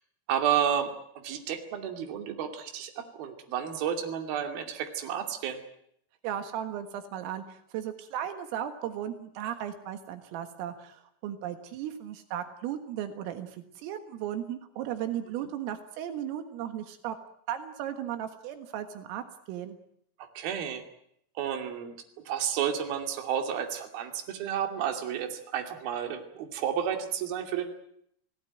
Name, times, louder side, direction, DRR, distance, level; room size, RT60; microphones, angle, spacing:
voice 1, 0.3-5.6 15.4-15.5 20.2-20.8 21.4-21.9 22.3-27.6, right 9 dB, 50° right, 5 dB, 4.0 m, -31 dB
voice 2, 6.2-17.2 17.5-19.8, right 10 dB, 80° right, 8 dB, 4.2 m, -36 dB
28.5 x 17.5 x 9.2 m, 0.73 s
omnidirectional pair, 5.9 m